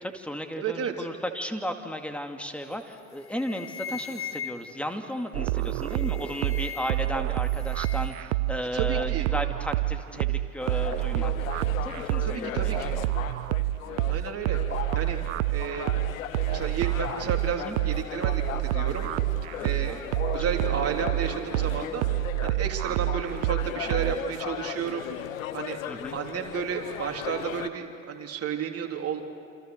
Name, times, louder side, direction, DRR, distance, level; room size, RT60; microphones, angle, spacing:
voice 1, 0.0-11.5 11.8-13.0 17.6-17.8 19.6-20.0 25.9-26.2, equal, 5° left, 5 dB, 2.4 m, -35 dB
voice 2, 0.6-1.1 8.7-9.3 12.2-13.0 14.1-15.2 15.5-15.9 16.5-19.1 19.6-20.0 20.3-22.1 22.4-25.1 25.5-25.8 26.1-29.2, right 7 dB, 35° right, 2 dB, 3.3 m, -32 dB
sound 1, 2.7-2.9 3.2-4.9 5.7-7.2 7.4-8.2, left 8 dB, 30° left, 1.6 m, -40 dB
sound 2, 5.3-24.2, right 17 dB, 60° right, 0.7 m, -28 dB
sound 3, 10.6-27.7, left 11 dB, 75° left, 1.1 m, -37 dB
28.0 x 27.5 x 6.7 m, 2.4 s
figure-of-eight pair, 70°, 42 cm